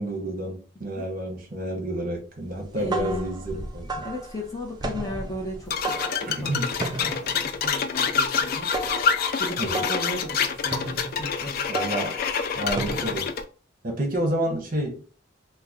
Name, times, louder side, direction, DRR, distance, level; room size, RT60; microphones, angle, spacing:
voice 1, 0.0-4.1 6.3-6.7 9.6-9.9 11.7-12.2 12.5-13.3 13.8-15.0, right 1 dB, 45° right, 0.9 m, -29 dB
sound 1, 2.6-13.4, right 2 dB, 20° right, 0.4 m, -34 dB
voice 2, 2.8-3.4 4.0-8.7 9.4-11.7, left 1 dB, 20° left, 0.8 m, -35 dB
sound 2, 5.7-13.4, left 6 dB, 50° left, 0.3 m, -27 dB
3.1 x 2.2 x 3.6 m
head